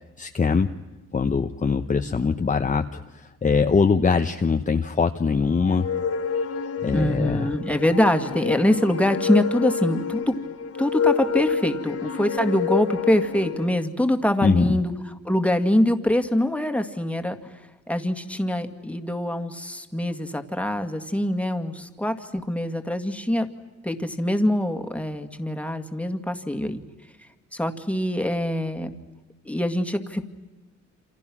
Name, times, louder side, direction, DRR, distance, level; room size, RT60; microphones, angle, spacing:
voice 1, 0.2-0.7 1.1-5.9 6.8-7.5 14.4-14.8, left 5 dB, 25° left, 6 dB, 0.9 m, -22 dB
sound 1, 5.6-13.7, left 6 dB, 50° left, 1.8 m, -28 dB
voice 2, 6.9-10.3 10.8-14.9 15.3-17.4 17.9-23.5 23.8-26.8 27.5-28.9 29.5-30.2, left 1 dB, 5° left, 7 dB, 2.0 m, -24 dB
28.0 x 27.5 x 6.2 m, 1.2 s
cardioid pair, 90°, 30 cm